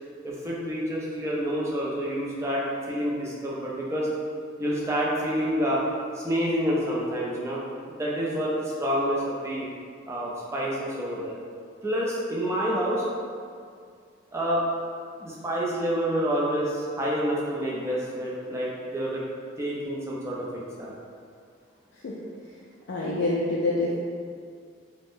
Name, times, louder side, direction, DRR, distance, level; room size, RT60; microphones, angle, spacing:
voice 1, 0.2-4.1 4.6-5.8 6.1-7.6 7.9-9.7 10.1-11.4 11.8-13.0 14.3-14.6 15.2-19.2 19.6-20.9, equal, 15° right, -5 dB, 0.3 m, -28 dB
voice 2, 22.9-24.0, left 2 dB, 60° left, -7 dB, 0.3 m, -26 dB
2.5 x 2.0 x 3.5 m, 2.2 s
head